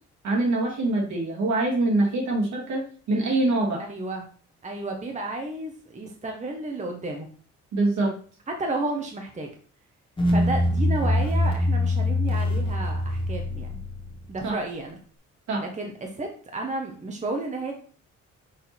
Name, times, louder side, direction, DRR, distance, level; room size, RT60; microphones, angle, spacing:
voice 1, 0.2-3.8 7.7-8.2 14.4-14.6 15.5-15.7, right 2 dB, 70° right, -1 dB, 2.6 m, -24 dB
voice 2, 3.8-4.3 4.6-7.3 8.5-9.5 10.3-13.8 14.3-15.0 15.6-17.7, right 2 dB, 25° right, 2 dB, 1.1 m, -32 dB
sound 1, 10.2-14.4, left 1 dB, 15° left, 1.4 m, -24 dB
6.5 x 3.8 x 4.3 m, 0.43 s
cardioid pair, 90°, 30 cm